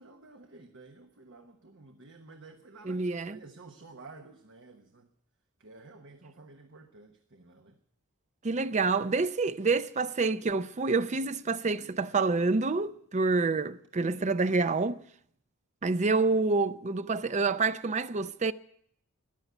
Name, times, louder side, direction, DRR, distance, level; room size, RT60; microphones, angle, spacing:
voice 1, 0.0-5.1 5.6-7.8, right 3 dB, 60° right, 1.2 m, -52 dB
voice 2, 2.8-3.4 8.4-15.0 15.8-18.5, right 3 dB, 30° right, 0.5 m, -27 dB
14.0 x 11.0 x 7.9 m
head